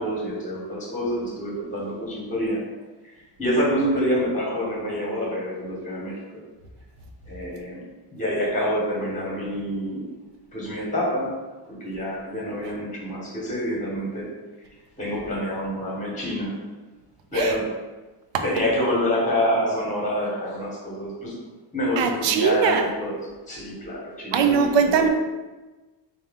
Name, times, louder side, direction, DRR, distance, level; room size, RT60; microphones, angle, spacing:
voice 1, 0.0-2.6 3.4-6.1 7.2-7.8 8.1-10.0 10.5-11.3 11.7-14.3 15.0-16.6 17.3-17.7 18.4-21.3 21.7-23.2 23.5-25.0, equal, 15° left, -4 dB, 1.1 m, -27 dB
voice 2, 22.0-22.8 24.3-25.1, right 6 dB, 70° right, 5 dB, 0.6 m, -20 dB
4.2 x 2.3 x 3.5 m, 1.2 s
cardioid pair, 125°, 45 cm